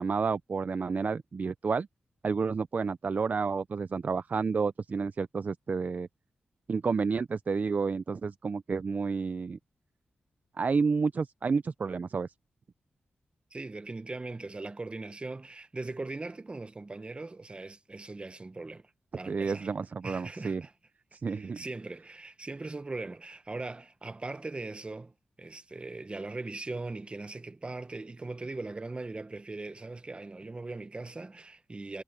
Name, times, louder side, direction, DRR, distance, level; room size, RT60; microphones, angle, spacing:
voice 1, 0.0-1.9 2.2-6.1 6.7-9.6 10.6-12.3 19.3-20.6 21.1-21.6, right 5 dB, 45° right, 0.5 m, -30 dB
voice 2, 13.5-19.7 20.0-20.7 21.3-25.1 25.4-32.0, right 3 dB, 30° right, 1.2 m, -40 dB
cardioid pair, 65°, 4 cm